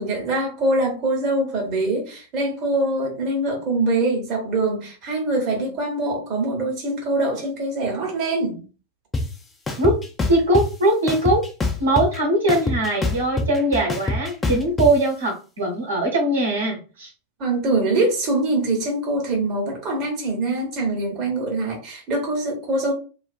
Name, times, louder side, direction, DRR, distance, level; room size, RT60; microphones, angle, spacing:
voice 1, 0.0-8.6 17.4-22.9, right 2 dB, 35° right, 0.9 m, -23 dB
sound 1, 9.1-9.2 9.7-10.6 11.1-12.2 12.5-14.9, left 3 dB, 15° left, 0.4 m, -24 dB
voice 2, 10.3-11.4 11.8-17.1, right 1 dB, 70° right, 0.9 m, -21 dB
2.4 x 2.3 x 2.3 m
figure-of-eight pair, 90°, 0 cm